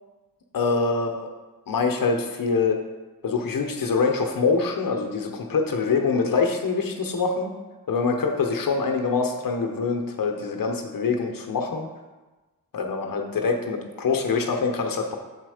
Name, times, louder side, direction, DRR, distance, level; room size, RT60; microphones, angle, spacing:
voice 1, 0.5-1.3 1.7-2.8 3.2-7.5 7.9-11.9 12.7-15.2, left 4 dB, 70° left, 3 dB, 1.0 m, -24 dB
7.3 x 4.3 x 4.9 m, 1.2 s
cardioid pair, 80°, 36 cm